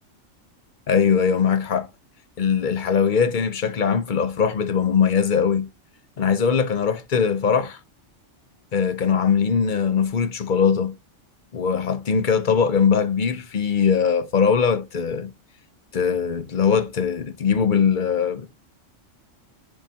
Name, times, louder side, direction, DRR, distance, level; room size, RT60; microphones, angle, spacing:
voice 1, 0.9-1.9 2.4-5.7 6.2-7.8 8.7-10.9 11.5-15.3 15.9-18.5, left 6 dB, 45° left, 0.8 m, -21 dB
10.5 x 3.6 x 2.8 m
omnidirectional pair, 1.3 m